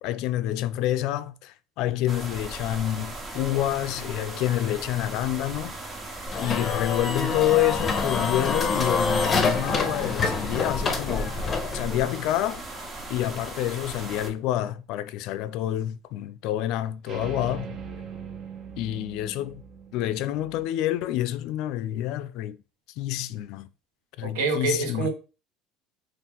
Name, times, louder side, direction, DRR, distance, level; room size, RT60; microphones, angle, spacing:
voice 1, 0.0-5.7 6.4-11.4 11.7-12.6 13.1-17.8 18.8-19.6 19.9-22.6 23.0-23.7 24.2-25.1, left 13 dB, 70° left, 0.3 m, -28 dB
sound 1, 2.1-14.3, right 2 dB, 25° right, 0.9 m, -38 dB
sound 2, 6.3-12.1, left 4 dB, 30° left, 0.6 m, -26 dB
sound 3, 17.1-20.6, right 6 dB, 50° right, 0.6 m, -42 dB
voice 2, 24.2-25.1, right 4 dB, 85° right, 0.8 m, -26 dB
2.8 x 2.4 x 3.5 m
supercardioid pair, 95°, 0 cm